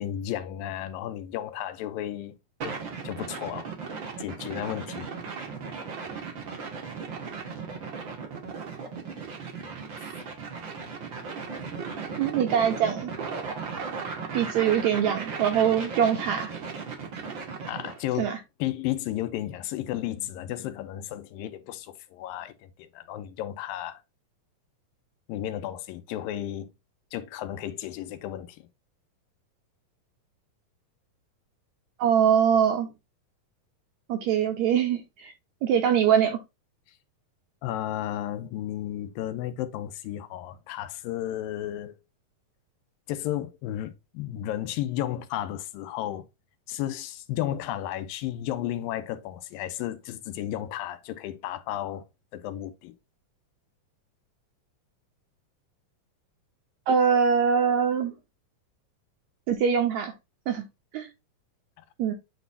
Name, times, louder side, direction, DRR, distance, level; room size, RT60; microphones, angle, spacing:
voice 1, 0.0-2.3 2.6-2.8 3.0-3.7 4.2-5.1 10.0-10.1 17.7-22.5 22.8-24.0 25.3-26.7 27.1-28.7 37.6-42.0 43.1-46.3 46.7-52.0 52.3-52.9, left 12 dB, 85° left, 2.4 m, -33 dB
sound 1, 2.6-18.0, right 5 dB, 60° right, 1.3 m, -36 dB
voice 2, 12.2-13.1 14.3-16.5 18.2-18.4 32.0-32.9 34.1-35.3 35.6-36.4 56.9-58.1 59.5-60.1 60.5-60.6 60.9-61.1 62.0-62.1, right 8 dB, 75° right, 1.7 m, -23 dB
9.1 x 4.1 x 2.7 m
omnidirectional pair, 4.1 m